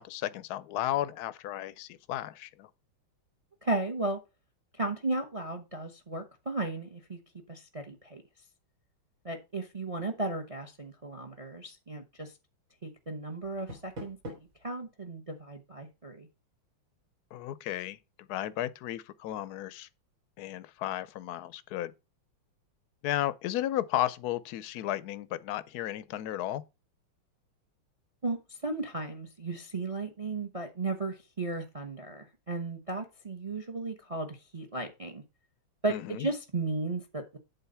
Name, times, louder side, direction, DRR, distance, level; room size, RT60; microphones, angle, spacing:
voice 1, 0.0-2.7 17.3-19.9 20.4-21.9 23.0-26.6 35.9-36.3, left 13 dB, 75° left, 0.9 m, -34 dB
voice 2, 3.6-4.2 4.8-7.2 7.5-8.2 9.2-12.3 12.8-14.2 14.6-16.3 28.2-35.2 35.8-37.4, right 2 dB, 40° right, 0.4 m, -35 dB
Door, 13.4-14.6, equal, 60° right, 4.5 m, -44 dB
8.0 x 3.9 x 6.8 m
omnidirectional pair, 2.3 m